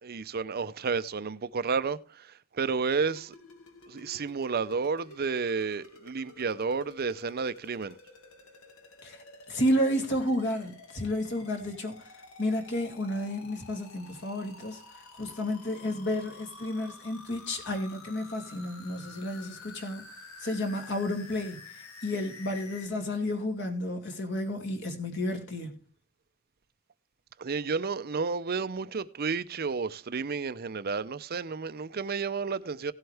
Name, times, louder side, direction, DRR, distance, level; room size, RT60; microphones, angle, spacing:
voice 1, 0.0-3.4 3.9-8.0 27.4-32.9, right 5 dB, 45° right, 0.6 m, -31 dB
sound 1, 2.9-22.9, left 3 dB, 70° left, 2.1 m, -50 dB
voice 2, 9.5-11.9 12.4-14.8 15.2-20.0 20.4-25.7, left 1 dB, 55° left, 2.6 m, -31 dB
16.5 x 7.9 x 3.4 m
head